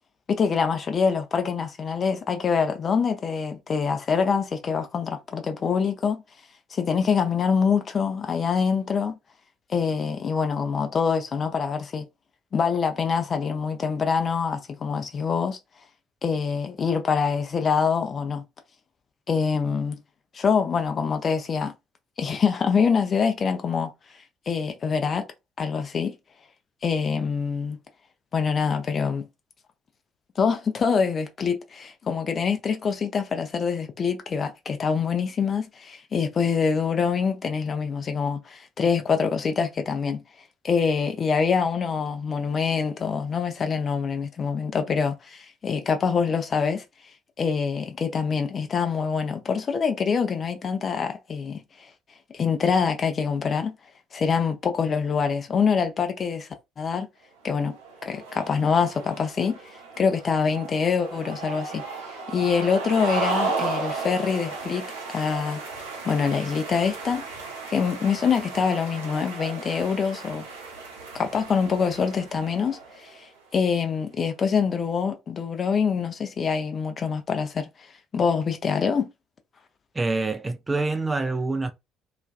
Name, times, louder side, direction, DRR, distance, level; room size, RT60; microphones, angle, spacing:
voice 1, 0.3-6.2 6.7-9.2 9.7-12.1 12.5-15.6 16.2-18.4 19.3-20.0 20.3-21.7 22.2-23.9 24.5-25.3 25.6-26.2 26.8-27.8 28.3-29.2 30.4-40.2 40.6-46.8 47.4-51.6 52.3-53.7 54.1-56.5 56.8-57.1 57.4-57.8 58.1-59.6 60.0-61.8 62.3-65.6 66.0-67.2 67.7-70.5 71.1-73.2 73.5-77.7 78.1-79.1, left 6 dB, 40° left, 0.5 m, -25 dB
sound 1, 57.6-73.3, right 4 dB, 75° right, 0.6 m, -35 dB
voice 2, 79.9-81.7, right 3 dB, 20° right, 0.3 m, -26 dB
2.4 x 2.3 x 2.2 m
figure-of-eight pair, 50°, 0 cm